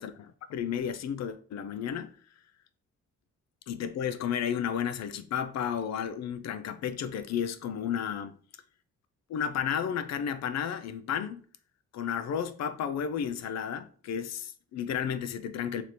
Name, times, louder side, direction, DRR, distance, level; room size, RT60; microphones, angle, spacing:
voice 1, 0.0-2.1 3.7-8.4 9.3-11.4 11.9-15.8, left 8 dB, 60° left, 0.5 m, -32 dB
3.1 x 2.8 x 4.1 m
cardioid pair, 90°, 30 cm